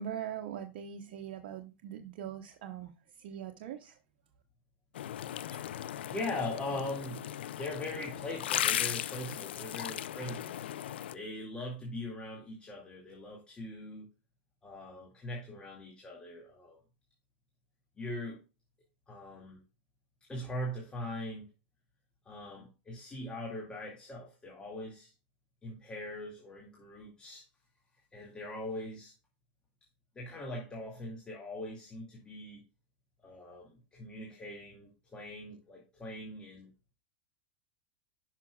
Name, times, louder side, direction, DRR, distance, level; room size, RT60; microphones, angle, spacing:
voice 1, 0.0-2.9 3.2-4.0, right 9 dB, 65° right, 0.9 m, -41 dB
sound 1, 5.0-11.1, left 11 dB, 80° left, 0.4 m, -37 dB
voice 2, 5.5-7.3 7.6-10.6 11.1-14.1 14.6-16.8 18.0-18.4 19.1-19.6 20.3-21.5 22.3-25.1 25.6-27.4 28.1-29.1 30.2-32.6 33.2-36.7, left 1 dB, 15° left, 2.2 m, -41 dB
10.5 x 5.9 x 2.3 m
hypercardioid pair, 115°, 6 cm